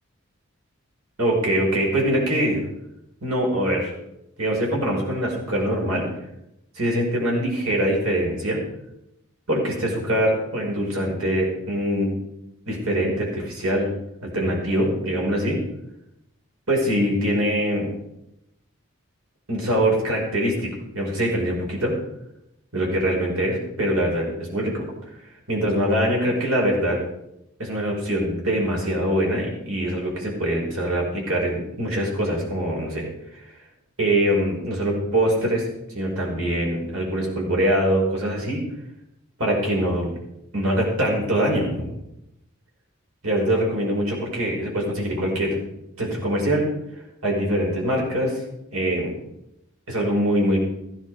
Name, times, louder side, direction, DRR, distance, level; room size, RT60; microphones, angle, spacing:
voice 1, 1.2-2.7 3.2-3.9 4.4-6.1 6.8-8.6 9.5-12.1 12.7-13.9 14.2-15.6 16.7-17.9 19.5-22.0 22.7-24.9 25.5-27.0 27.6-33.5 34.0-38.6 39.4-40.2 40.5-41.9 43.2-45.6 46.0-46.7 46.9-48.4 48.7-49.1 49.9-50.6, right 1 dB, 85° right, -1 dB, 5.2 m, -23 dB
15.0 x 10.5 x 4.9 m, 0.84 s
head